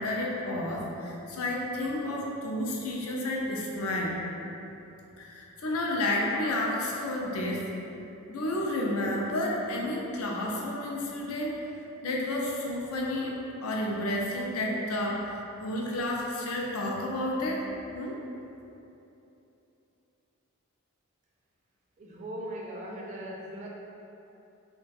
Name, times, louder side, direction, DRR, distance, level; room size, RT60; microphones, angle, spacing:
voice 1, 0.0-4.2 5.2-7.7 8.3-11.6 12.0-15.3 15.6-17.6 17.9-18.2, left 1 dB, 75° left, -2 dB, 0.5 m, -31 dB
voice 2, 22.0-23.7, right 1 dB, 30° right, -3 dB, 0.4 m, -39 dB
2.4 x 2.3 x 3.9 m, 2.9 s
head